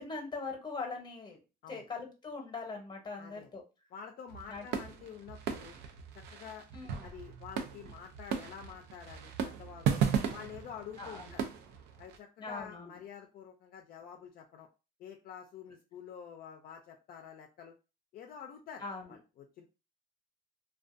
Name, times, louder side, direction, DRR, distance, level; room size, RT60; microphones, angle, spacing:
voice 1, 0.0-1.4 1.7-3.6 4.5-4.7 6.7-7.1 11.0-11.3 12.4-12.9 18.8-19.1, left 4 dB, 25° left, 3 dB, 0.8 m, -41 dB
voice 2, 3.2-3.5 3.9-5.8 6.1-6.7 7.0-10.0 10.3-11.4 12.0-14.7 15.0-17.7 18.1-19.7, left 7 dB, 60° left, 3 dB, 0.4 m, -48 dB
sound 1, 4.3-12.2, right 7 dB, 80° right, 0.5 m, -36 dB
2.4 x 2.2 x 2.5 m, 0.30 s
cardioid pair, 110°, 17 cm